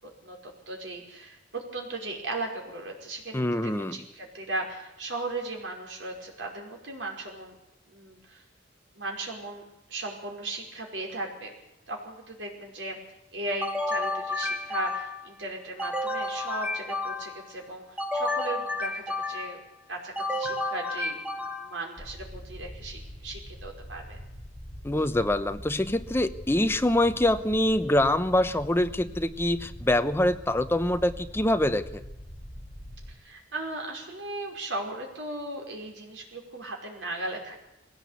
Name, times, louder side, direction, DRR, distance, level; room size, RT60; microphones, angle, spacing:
voice 1, 0.0-7.6 7.9-8.4 8.9-9.6 9.9-11.5 11.9-13.0 13.3-19.6 19.9-24.2 33.2-37.6, right 2 dB, 80° right, 1 dB, 5.2 m, -37 dB
voice 2, 3.3-4.0 24.8-32.0, left 1 dB, 15° left, 10 dB, 0.8 m, -25 dB
Original Phone Ringtone, 13.6-15.3 15.8-17.5 18.0-19.6 20.1-21.9, left 2 dB, 10° right, 2.0 m, -31 dB
sound 1, 22.0-33.1, equal, 35° left, 3.5 m, -43 dB
21.0 x 17.0 x 8.3 m, 0.91 s
head